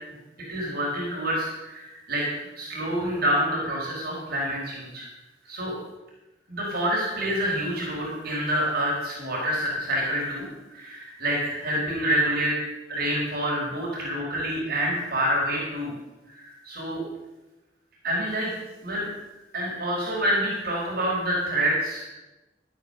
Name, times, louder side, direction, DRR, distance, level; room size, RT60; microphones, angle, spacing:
voice 1, 0.5-2.2 2.6-5.1 5.4-5.7 6.5-10.5 10.7-12.5 12.9-15.9 16.3-17.0 18.0-18.5 18.8-19.1 19.5-22.1, right 1 dB, 55° right, -4 dB, 4.8 m, -27 dB
14.0 x 9.0 x 6.7 m, 1.1 s
head